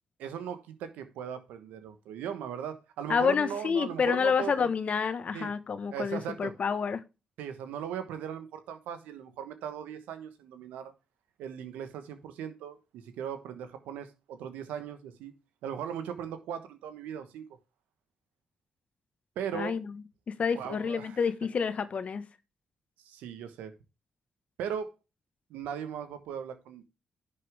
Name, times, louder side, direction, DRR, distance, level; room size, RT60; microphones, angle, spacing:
voice 1, 0.2-4.7 5.3-5.5 5.9-6.5 7.4-10.9 11.4-15.3 15.6-17.4 19.3-19.8 20.5-21.2 23.0-23.7 24.6-24.9 25.5-26.8, right 8 dB, 85° right, 1.2 m, -38 dB
voice 2, 3.1-7.0 19.5-19.9 20.3-22.2, left 6 dB, 55° left, 1.3 m, -28 dB
10.5 x 6.7 x 3.5 m
supercardioid pair, 50°, 3 cm